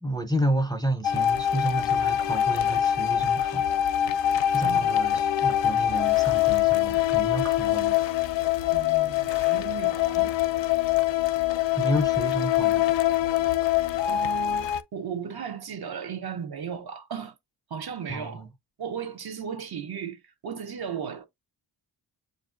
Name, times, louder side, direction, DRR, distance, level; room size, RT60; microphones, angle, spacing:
voice 1, 0.0-3.9 4.5-8.0 11.7-12.8 18.1-18.5, right 1 dB, 10° left, 0.5 m, -30 dB
sound 1, 1.0-14.8, left 12 dB, 75° left, 0.5 m, -24 dB
voice 2, 8.7-10.4 14.0-17.3 17.7-18.5 18.8-21.3, right 7 dB, 55° right, 0.7 m, -36 dB
6.9 x 2.6 x 2.4 m
wide cardioid pair, 115°, 44 cm